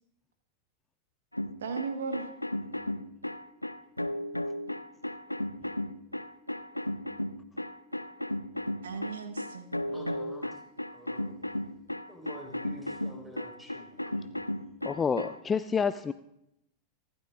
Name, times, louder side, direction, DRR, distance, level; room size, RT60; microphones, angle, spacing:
sound 1, 1.3-15.4, left 1 dB, 85° left, 0.5 m, -35 dB
voice 1, 1.6-2.3 8.8-10.2, right 5 dB, 65° right, 7 dB, 1.3 m, -37 dB
voice 2, 9.9-10.6 10.9-11.3 12.1-14.4, left 1 dB, 5° right, 0 dB, 4.3 m, -48 dB
voice 3, 14.8-16.1, left 6 dB, 20° left, 13 dB, 0.4 m, -28 dB
25.5 x 12.5 x 2.5 m, 0.81 s
figure-of-eight pair, 90°, 0 cm